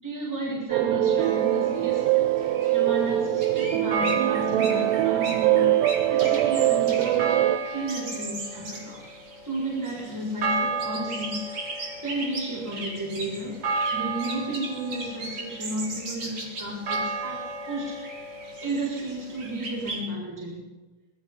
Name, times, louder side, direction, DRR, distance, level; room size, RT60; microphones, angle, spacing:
voice 1, 0.0-2.2 2.6-9.0 9.4-11.6 12.0-13.6 13.9-18.0 18.6-20.7, right 1 dB, 5° right, -4 dB, 6.6 m, -33 dB
sound 1, 0.7-7.6, right 14 dB, 85° right, 2.9 m, -23 dB
sound 2, 1.2-20.0, right 3 dB, 35° right, 4.7 m, -33 dB
26.5 x 20.0 x 5.5 m, 1.3 s
omnidirectional pair, 4.7 m